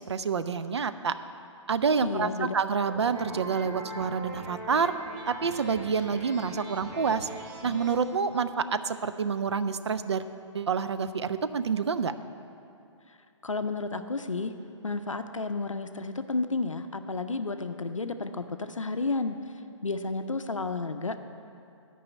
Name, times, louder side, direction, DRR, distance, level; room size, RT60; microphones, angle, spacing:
voice 1, 0.1-1.1 1.7-4.9 5.3-7.3 7.6-10.2 10.5-12.1, right 5 dB, 60° right, 11 dB, 0.5 m, -28 dB
voice 2, 2.0-2.5 13.4-14.5 14.8-19.4 19.8-21.2, left 3 dB, 85° left, 9 dB, 0.5 m, -31 dB
sound 1, 2.8-8.0, right 2 dB, 25° right, 1.3 m, -41 dB
9.5 x 5.4 x 8.1 m, 2.6 s
figure-of-eight pair, 130°, 16 cm